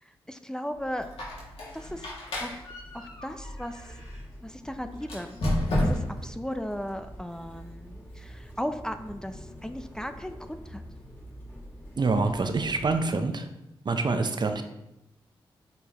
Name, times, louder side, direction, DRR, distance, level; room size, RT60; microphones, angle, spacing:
voice 1, 0.0-1.1 1.7-2.1 2.4-2.7 2.9-4.0 4.4-5.4 5.8-10.8, equal, 5° left, 8 dB, 0.6 m, -36 dB
sound 1, 0.7-13.1, equal, 20° left, 1.8 m, -46 dB
Squeak, 1.0-4.2 5.0-6.3, left 1 dB, 75° left, 2.3 m, -31 dB
voice 2, 12.0-13.5 13.8-14.6, right 3 dB, 45° right, 7 dB, 0.7 m, -26 dB
8.5 x 4.6 x 3.0 m, 0.91 s
cardioid pair, 50°, 10 cm